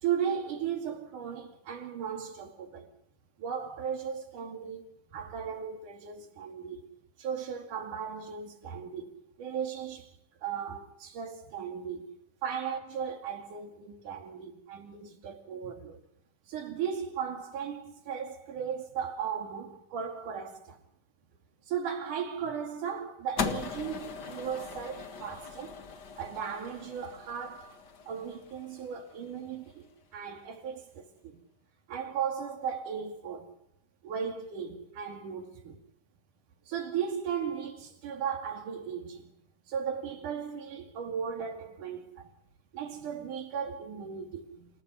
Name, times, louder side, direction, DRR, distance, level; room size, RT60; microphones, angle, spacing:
voice 1, 0.0-2.9 3.4-6.9 7.2-10.1 10.4-12.1 12.4-16.0 16.5-20.8 21.7-25.7 26.2-29.9 30.1-31.4 31.9-33.5 34.0-35.8 36.7-39.3 39.7-42.3 42.7-44.7, right 7 dB, 70° right, 3.9 m, -36 dB
sound 1, 23.4-29.7, left 6 dB, 40° left, 1.6 m, -39 dB
27.5 x 14.5 x 8.1 m
omnidirectional pair, 3.8 m